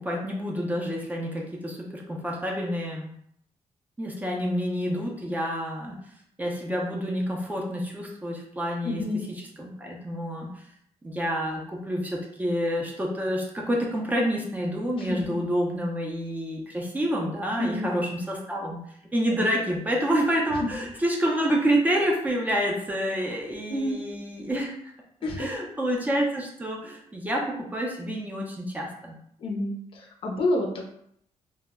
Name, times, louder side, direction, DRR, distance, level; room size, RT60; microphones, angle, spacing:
voice 1, 0.0-3.1 4.0-6.0 6.4-9.0 9.6-10.6 11.0-18.8 19.1-24.7 25.4-29.2, equal, 15° right, -2 dB, 0.4 m, -28 dB
voice 2, 8.8-9.3 15.0-15.4 17.6-17.9 20.6-20.7 23.7-24.0 25.2-25.5 29.4-30.9, left 2 dB, 45° left, 0 dB, 0.5 m, -29 dB
2.1 x 2.0 x 3.4 m, 0.68 s
wide cardioid pair, 160°, 12 cm